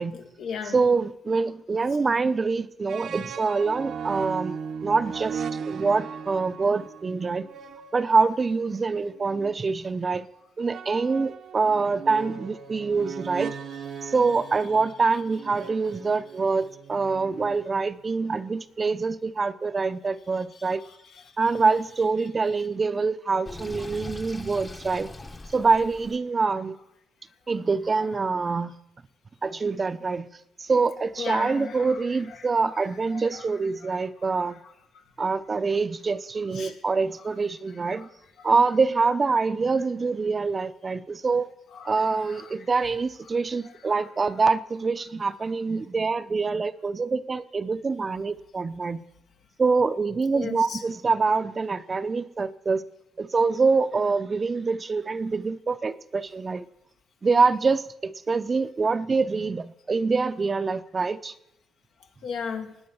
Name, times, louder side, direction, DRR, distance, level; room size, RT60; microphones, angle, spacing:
voice 1, 0.1-0.8 31.2-32.0 33.1-33.4 36.6-36.7 38.0-38.1 38.4-38.5 41.8-41.9 42.3-42.5 43.8-43.9 50.3-50.8 62.2-62.7, left 6 dB, 75° left, 4 dB, 2.0 m, -35 dB
voice 2, 0.7-4.6 4.8-7.5 7.9-10.3 10.6-13.6 14.0-20.8 21.4-25.1 25.5-26.8 27.5-28.8 29.4-30.3 30.6-34.6 35.2-38.1 38.4-41.5 41.8-49.0 49.6-52.8 53.2-56.7 57.2-61.3, right 4 dB, 35° right, 12 dB, 0.7 m, -25 dB
sound 1, 2.9-9.6 10.7-18.0, right 6 dB, 65° right, 1.0 m, -38 dB
Sink (filling or washing), 23.4-26.2, left 2 dB, 25° left, 1.2 m, -40 dB
17.5 x 9.3 x 7.1 m, 0.83 s
cardioid pair, 90°, 0 cm